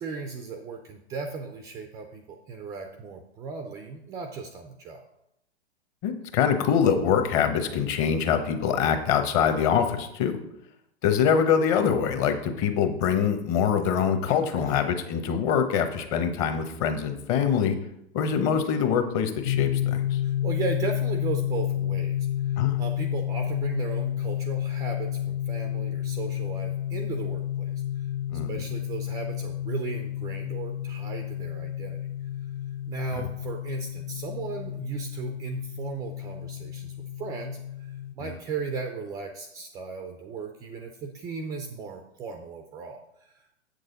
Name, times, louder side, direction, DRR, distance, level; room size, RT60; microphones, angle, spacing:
voice 1, 0.0-5.0 14.3-14.7 20.2-28.1 28.5-32.0 32.9-43.6, right 5 dB, 10° right, 5 dB, 0.3 m, -36 dB
voice 2, 6.0-10.4 11.0-17.8 18.1-20.2 22.6-22.8 28.3-28.7, left 7 dB, 35° left, 8 dB, 1.1 m, -24 dB
sound 1, 19.4-38.1, left 11 dB, 60° left, 0.5 m, -31 dB
7.9 x 6.6 x 3.9 m, 0.80 s
hypercardioid pair, 115°, 34 cm